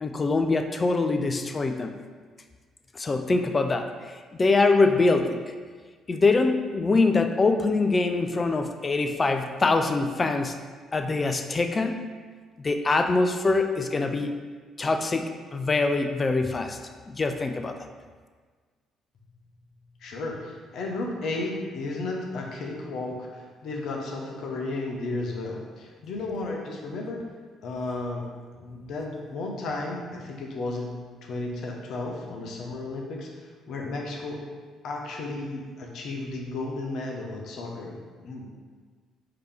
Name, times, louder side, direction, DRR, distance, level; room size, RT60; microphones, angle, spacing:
voice 1, 0.0-2.0 2.9-5.5 6.1-10.6 10.9-12.1 12.6-14.3 14.8-16.8 17.1-17.9, left 3 dB, 30° left, 6 dB, 0.4 m, -24 dB
voice 2, 20.0-27.2 27.6-28.2 28.6-30.9 31.2-33.3 33.7-34.4 34.8-38.5, left 2 dB, 60° left, 0 dB, 0.7 m, -33 dB
5.0 x 2.9 x 3.5 m, 1.5 s
hypercardioid pair, 50°, 0 cm